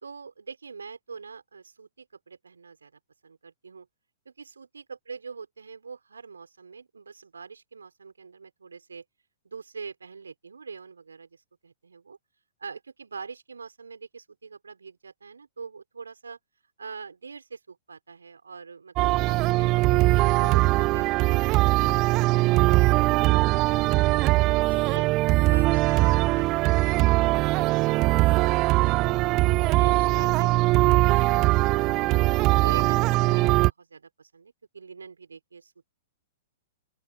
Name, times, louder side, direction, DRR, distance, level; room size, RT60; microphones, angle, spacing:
voice 1, 0.0-3.9 4.2-9.0 9.4-12.2 12.6-16.4 16.8-20.0 20.4-23.0 23.3-25.1 25.5-29.2 29.6-30.5 32.6-35.7, right 5 dB, 75° right, 4.4 m, -44 dB
sound 1, 19.0-33.7, right 20 dB, 35° right, 0.3 m, -21 dB
open air
figure-of-eight pair, 110°, 0 cm